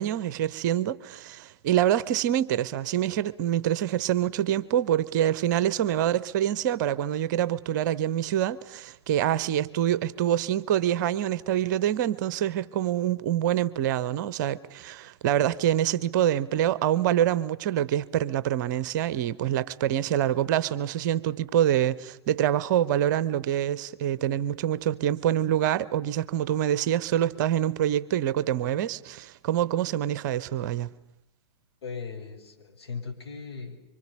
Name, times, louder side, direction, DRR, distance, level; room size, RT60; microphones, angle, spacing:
voice 1, 0.0-30.9, right 11 dB, 45° right, 0.9 m, -26 dB
voice 2, 31.8-33.8, left 5 dB, 65° left, 5.3 m, -38 dB
25.5 x 25.0 x 6.9 m
figure-of-eight pair, 105°, 14 cm